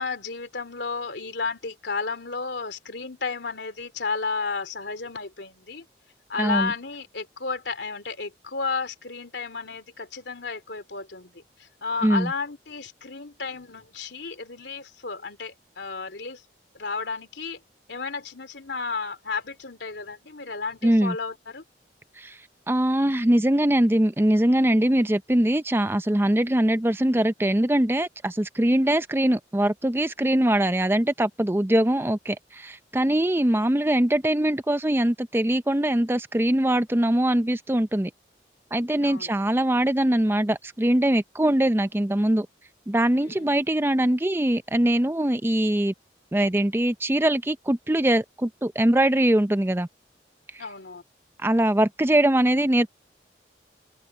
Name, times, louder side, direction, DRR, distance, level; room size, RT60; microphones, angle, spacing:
voice 1, 0.0-5.8 6.3-16.4 16.7-17.6 17.9-21.6 39.0-39.3 43.2-43.5 50.6-51.0, left 4 dB, 85° left, 2.9 m, -32 dB
voice 2, 6.4-6.7 12.0-12.3 20.8-21.1 22.2-22.4 22.7-38.1 38.7-42.5 42.9-45.9 46.3-49.9 51.4-52.9, right 1 dB, 15° right, 0.5 m, -22 dB
head